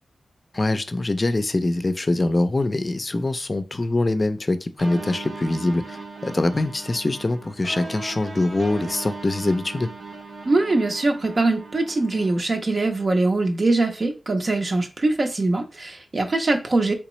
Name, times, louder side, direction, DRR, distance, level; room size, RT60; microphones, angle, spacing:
voice 1, 0.5-9.9, left 2 dB, 40° left, 0.4 m, -24 dB
sound 1, 4.8-12.4, right 3 dB, 80° right, 1.0 m, -38 dB
voice 2, 10.5-16.9, right 2 dB, 55° right, 0.6 m, -22 dB
3.3 x 2.9 x 3.1 m
cardioid pair, 45°, 0 cm